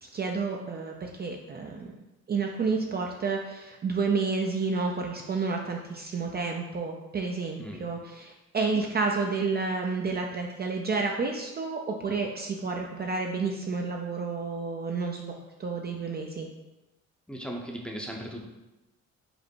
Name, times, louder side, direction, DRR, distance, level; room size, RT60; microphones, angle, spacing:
voice 1, 0.0-1.9 2.3-16.5, right 4 dB, 35° right, 1 dB, 0.5 m, -30 dB
voice 2, 17.3-18.4, equal, 5° left, -1 dB, 0.7 m, -37 dB
5.2 x 2.1 x 4.4 m, 1.0 s
cardioid pair, 90°, 30 cm